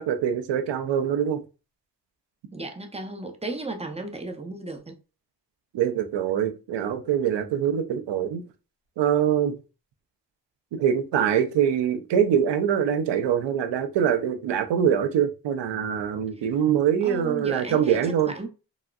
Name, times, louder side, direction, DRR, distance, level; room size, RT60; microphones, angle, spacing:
voice 1, 0.0-1.4 5.7-8.4 9.0-9.6 10.7-18.3, right 9 dB, 85° right, 0.6 m, -24 dB
voice 2, 2.5-5.0 16.3-16.5 17.0-18.5, right 2 dB, 15° right, 0.7 m, -35 dB
3.6 x 2.1 x 2.3 m
cardioid pair, 50°, 42 cm